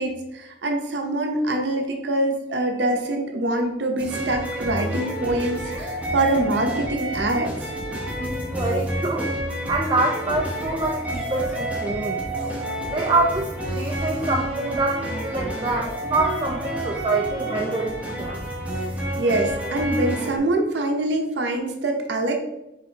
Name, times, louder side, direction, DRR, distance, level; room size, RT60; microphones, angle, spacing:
voice 1, 0.0-7.7 19.2-22.3, right 1 dB, 75° right, 3 dB, 0.7 m, -24 dB
sound 1, 4.0-20.4, right 1 dB, 10° right, 0.9 m, -29 dB
voice 2, 8.2-9.3 9.7-12.2 12.8-18.5, right 2 dB, 25° right, -1 dB, 0.4 m, -25 dB
4.3 x 4.3 x 2.8 m, 0.89 s
head